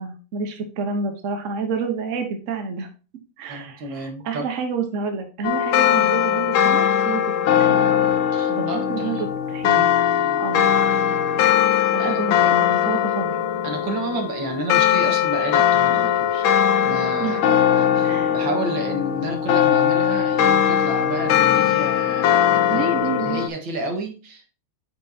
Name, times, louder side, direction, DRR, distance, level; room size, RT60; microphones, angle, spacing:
voice 1, 0.0-2.9 3.4-7.9 8.5-9.9 10.4-10.7 11.9-13.4 17.2-17.6 18.0-18.3 22.7-23.4, right 5 dB, 45° right, 5 dB, 1.2 m, -29 dB
voice 2, 3.5-4.5 8.3-9.3 10.2-10.4 12.0-12.2 13.6-16.5 16.8-22.9 23.2-24.5, right 2 dB, 75° right, 3 dB, 2.2 m, -31 dB
sound 1, 5.4-23.5, left 9 dB, 80° left, 1.5 m, -20 dB
8.9 x 5.4 x 2.8 m, 0.34 s
omnidirectional pair, 2.2 m